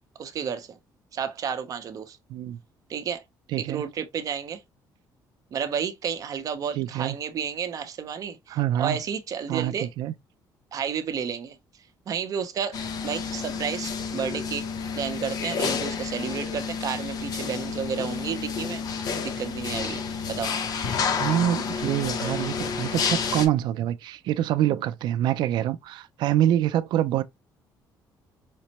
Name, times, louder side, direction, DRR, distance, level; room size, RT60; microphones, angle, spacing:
voice 1, 0.2-0.8 1.1-2.2 2.9-3.2 3.6-4.6 5.5-9.9 10.7-11.6 12.1-14.7 14.9-20.5, right 7 dB, 50° right, 0.7 m, -31 dB
voice 2, 3.5-3.8 6.8-7.2 8.5-9.0 9.5-10.1 21.2-27.2, right 12 dB, 70° right, 0.4 m, -25 dB
sound 1, 12.7-23.5, left 5 dB, 55° left, 0.7 m, -30 dB
5.2 x 2.1 x 2.8 m
cardioid pair, 125°, 8 cm